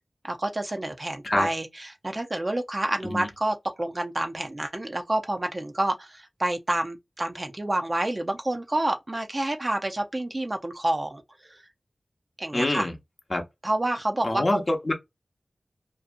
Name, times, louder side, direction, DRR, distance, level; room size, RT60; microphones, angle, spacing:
voice 1, 0.2-11.6 12.4-12.9 13.6-14.6, right 1 dB, 35° right, 0.5 m, -28 dB
voice 2, 12.5-12.9 13.3-13.4 14.2-14.9, left 2 dB, 45° left, 0.7 m, -25 dB
2.6 x 2.3 x 2.5 m
wide cardioid pair, 70°, 0 cm